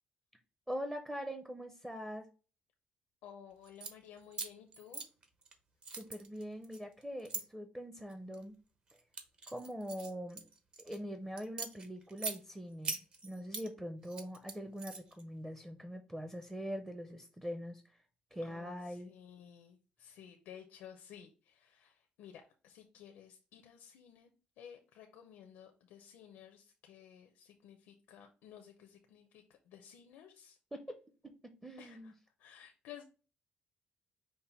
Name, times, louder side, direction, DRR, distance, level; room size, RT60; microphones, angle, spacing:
voice 1, 0.7-2.3 5.9-8.5 9.5-10.5 10.8-18.0 18.3-19.1 30.7-32.1, equal, 10° right, 6 dB, 0.6 m, -43 dB
voice 2, 3.2-5.0 18.4-30.6 31.8-32.1 32.4-33.0, left 9 dB, 90° left, 5 dB, 0.6 m, -55 dB
sound 1, 3.6-3.9 4.3-5.5 5.8-7.4 8.1-8.4 8.9-11.0 11.4-12.4 12.8-13.7 14.0-15.2, right 4 dB, 35° right, 0.8 m, -42 dB
5.4 x 2.1 x 4.2 m, 0.36 s
cardioid pair, 110°, 3 cm